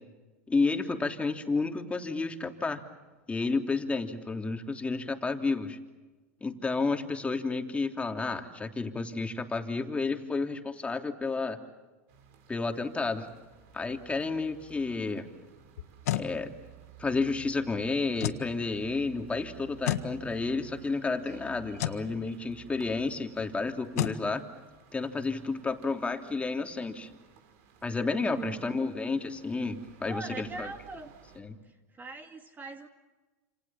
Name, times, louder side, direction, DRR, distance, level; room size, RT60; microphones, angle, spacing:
voice 1, 0.5-2.8 3.3-5.8 6.4-11.6 12.5-13.3 13.7-15.3 16.1-16.5 17.0-24.4 24.9-27.1 27.8-30.7 31.4-31.6, left 3 dB, 15° left, 5 dB, 3.1 m, -31 dB
sound 1, 12.1-31.4, right 7 dB, 65° right, 5.8 m, -54 dB
sound 2, 15.8-16.3 18.2-18.5 19.8-20.1 21.8-22.0 24.0-24.2, left 13 dB, 80° left, 1.6 m, -30 dB
voice 2, 28.2-28.8 30.1-31.1 31.6-32.9, right 4 dB, 20° right, 5 dB, 2.4 m, -41 dB
28.5 x 27.5 x 7.4 m, 1.2 s
hypercardioid pair, 100°, 8 cm